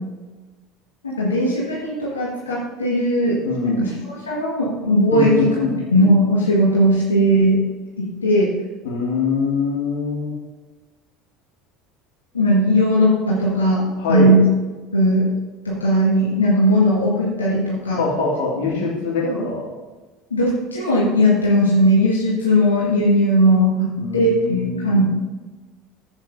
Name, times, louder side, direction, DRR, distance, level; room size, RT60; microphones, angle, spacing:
voice 1, 1.0-3.4 3.6-5.5 5.9-7.6 8.0-8.5 12.3-14.4 14.9-15.3 15.6-18.0 19.3-19.4 20.3-25.0, equal, 85° left, -7 dB, 1.9 m, -18 dB
voice 2, 3.4-3.9 5.1-5.7 8.8-10.3 14.0-14.4 18.0-19.7 24.0-25.0, left 4 dB, 70° left, -2 dB, 2.3 m, -23 dB
11.5 x 8.3 x 2.7 m, 1.2 s
figure-of-eight pair, 70°, 0 cm